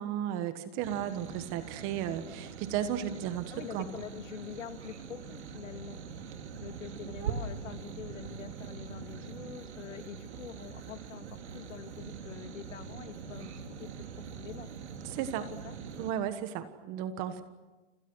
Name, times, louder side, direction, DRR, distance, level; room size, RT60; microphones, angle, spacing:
voice 1, 0.0-3.9 15.1-15.5 16.0-17.4, right 10 dB, 25° right, 11 dB, 1.4 m, -34 dB
sound 1, 0.8-16.1, right 6 dB, 60° right, 3.5 m, -43 dB
voice 2, 3.5-6.0 6.6-14.0 14.3-14.7 15.6-15.8, left 9 dB, 80° left, 8 dB, 2.4 m, -45 dB
30.0 x 26.5 x 6.3 m, 1.1 s
hypercardioid pair, 160°, 37 cm